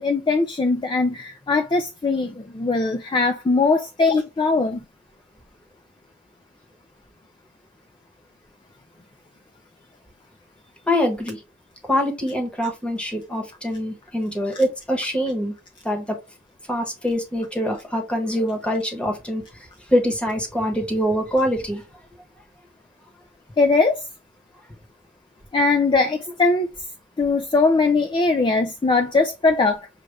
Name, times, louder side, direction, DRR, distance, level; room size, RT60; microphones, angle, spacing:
voice 1, 0.0-4.8 23.6-24.0 25.5-26.7 27.2-29.9, left 3 dB, 20° left, 0.4 m, -20 dB
voice 2, 10.9-11.4 11.9-15.5 15.8-16.2 16.7-19.4 19.9-21.8, equal, 5° left, 1.1 m, -24 dB
6.3 x 2.4 x 3.4 m
head